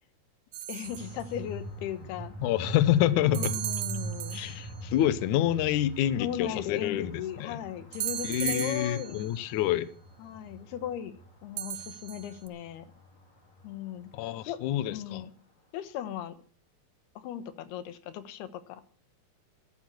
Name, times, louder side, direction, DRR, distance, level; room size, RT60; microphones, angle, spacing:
sound 1, 0.5-1.3 3.3-4.9 7.9-9.4 11.6-12.5, right 12 dB, 75° right, 1.7 m, -36 dB
voice 1, 0.7-2.4 3.2-4.4 6.2-9.3 10.2-11.2 11.4-12.9 13.6-14.1 14.5-14.6 14.9-15.3 15.7-16.4 17.2-18.8, left 10 dB, 90° left, 3.3 m, -37 dB
sound 2, 0.8-14.7, right 3 dB, 55° left, 5.8 m, -43 dB
voice 2, 2.4-3.6 4.3-7.6 8.2-9.9 14.1-15.3, left 12 dB, 70° left, 1.9 m, -27 dB
13.5 x 12.5 x 6.4 m
omnidirectional pair, 4.5 m